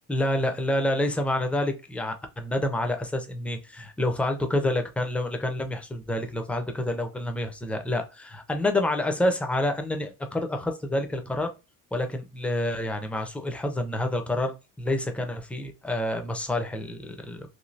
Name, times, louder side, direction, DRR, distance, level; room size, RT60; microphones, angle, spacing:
voice 1, 0.1-11.5 11.9-17.5, left 1 dB, 5° left, 0.4 m, -28 dB
3.1 x 2.6 x 2.6 m
cardioid pair, 145°, 33 cm